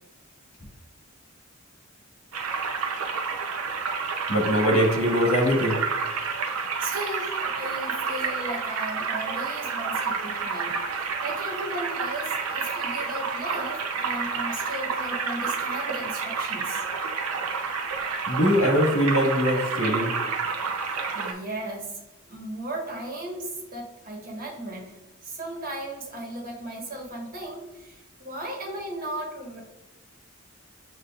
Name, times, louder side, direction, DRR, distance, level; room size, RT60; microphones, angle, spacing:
sound 1, 2.3-21.3, right 5 dB, 85° right, 0.6 m, -29 dB
voice 1, 4.3-5.8 18.3-20.1, equal, 80° left, -1 dB, 1.4 m, -22 dB
voice 2, 6.8-16.8 20.8-22.0 22.3-29.6, right 1 dB, 45° right, -3 dB, 1.3 m, -36 dB
7.9 x 2.7 x 2.4 m, 1.0 s
head